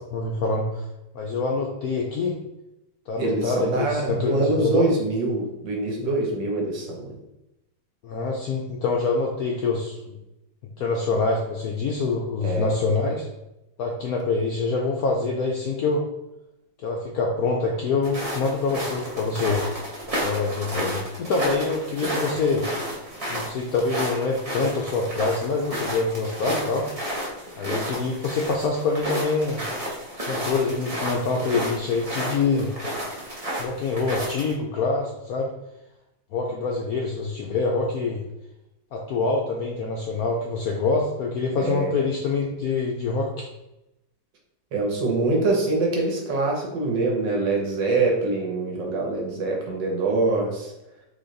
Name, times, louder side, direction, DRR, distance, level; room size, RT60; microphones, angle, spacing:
voice 1, 0.1-0.8 1.1-2.4 3.1-4.9 8.0-10.2 10.8-13.3 13.8-16.0 16.8-19.6 20.2-22.6 23.3-26.9 27.6-29.6 30.2-32.7 33.6-35.5 36.3-38.2 38.9-43.5, left 4 dB, 75° left, -1 dB, 0.8 m, -25 dB
voice 2, 3.2-7.2 12.4-12.7 22.0-22.3 41.6-42.0 44.7-50.7, right 2 dB, 70° right, -1 dB, 1.6 m, -24 dB
sound 1, 18.0-34.5, equal, 35° right, 0.6 m, -32 dB
4.1 x 3.2 x 3.9 m, 0.91 s
omnidirectional pair, 2.1 m